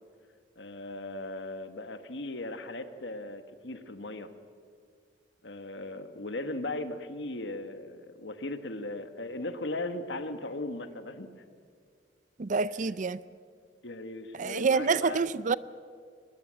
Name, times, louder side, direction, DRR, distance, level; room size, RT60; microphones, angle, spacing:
voice 1, 0.6-4.3 5.4-11.3 13.8-15.2, left 2 dB, 70° left, 1.5 m, -38 dB
voice 2, 12.4-13.2 14.3-15.5, right 4 dB, 45° right, 0.5 m, -27 dB
22.5 x 20.5 x 7.6 m
head